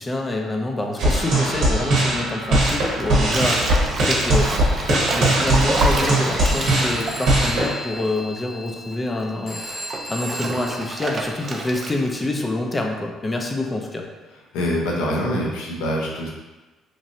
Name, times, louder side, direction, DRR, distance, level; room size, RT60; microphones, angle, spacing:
voice 1, 0.0-4.5 4.9-9.6 10.1-14.1, left 2 dB, 20° left, 2 dB, 0.5 m, -26 dB
sound 1, 1.0-7.7, right 1 dB, 75° right, 0.8 m, -20 dB
Bathtub (filling or washing), 2.5-8.4 8.7-12.2, right 3 dB, 40° right, 0.4 m, -29 dB
Telephone, 6.5-12.0, equal, 45° left, 0.9 m, -36 dB
voice 2, 14.5-16.3, equal, 85° left, -2 dB, 0.6 m, -24 dB
3.1 x 2.6 x 2.6 m, 1.2 s
supercardioid pair, 80°, 0 cm